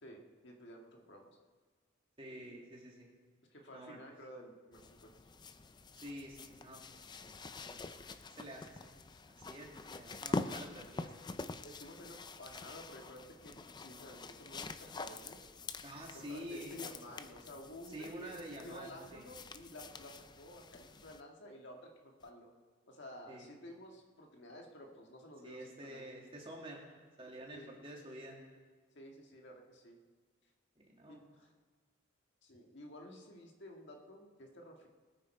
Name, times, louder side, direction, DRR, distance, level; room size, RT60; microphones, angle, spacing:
voice 1, 0.0-1.3 3.5-5.1 11.6-15.4 16.1-18.3 18.6-22.5 22.9-26.1 27.5-27.8 28.9-30.0 31.1-31.5 32.4-34.9, equal, 60° left, 1 dB, 1.8 m, -52 dB
voice 2, 2.2-3.2 3.7-4.0 6.0-7.0 7.7-8.0 8.4-9.0 9.3-11.3 15.8-16.8 17.9-19.3 23.3-23.5 25.4-26.8 27.2-28.4 30.8-31.2, equal, 25° right, -2 dB, 2.3 m, -48 dB
sound 1, 4.7-21.2 22.2-22.3, left 3 dB, 20° left, 0.4 m, -46 dB
20.5 x 9.4 x 4.4 m, 1.5 s
head